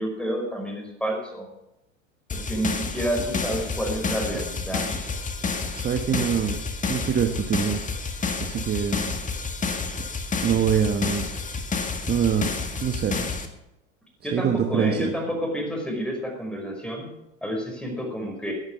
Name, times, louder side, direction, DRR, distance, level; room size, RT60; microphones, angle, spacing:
voice 1, 0.0-1.5 2.3-4.9 14.2-17.1 17.4-18.5, equal, 5° left, 2 dB, 5.4 m, -29 dB
sound 1, 2.3-13.5, left 4 dB, 20° left, 1.8 m, -30 dB
voice 2, 5.7-6.6 6.9-7.9 8.4-9.2 10.4-11.3 12.1-13.3 14.3-15.1, right 8 dB, 25° right, 5 dB, 1.3 m, -25 dB
16.5 x 9.6 x 6.5 m, 0.89 s
hypercardioid pair, 100°, 39 cm